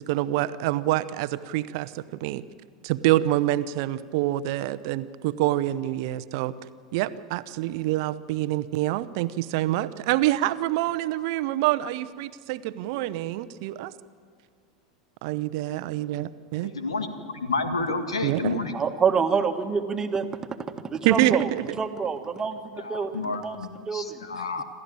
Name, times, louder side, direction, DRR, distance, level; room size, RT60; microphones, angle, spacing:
voice 1, 0.0-2.4 2.8-6.5 6.9-13.9 15.2-16.7 18.2-18.6 21.0-21.6, right 15 dB, 55° right, 15 dB, 0.7 m, -26 dB
voice 2, 16.6-17.1 17.4-18.8 22.9-24.6, left 3 dB, 80° left, 8 dB, 1.9 m, -30 dB
voice 3, 18.7-20.3 20.8-21.5 21.8-24.4, right 6 dB, 20° right, 7 dB, 1.7 m, -27 dB
27.5 x 13.5 x 8.9 m, 2.2 s
figure-of-eight pair, 85°, 3 cm